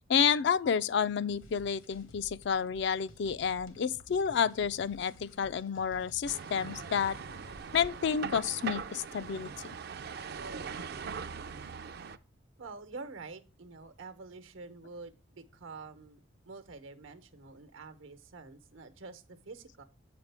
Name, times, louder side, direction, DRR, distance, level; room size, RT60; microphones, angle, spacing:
voice 1, 0.1-7.2 7.7-9.5, left 7 dB, 60° left, 0.3 m, -30 dB
sound 1, 1.3-7.7, left 1 dB, 75° left, 1.1 m, -54 dB
sound 2, 6.3-12.2, right 6 dB, 50° right, 0.5 m, -41 dB
voice 2, 12.6-19.8, right 3 dB, 80° right, 1.0 m, -47 dB
8.0 x 5.1 x 3.4 m
head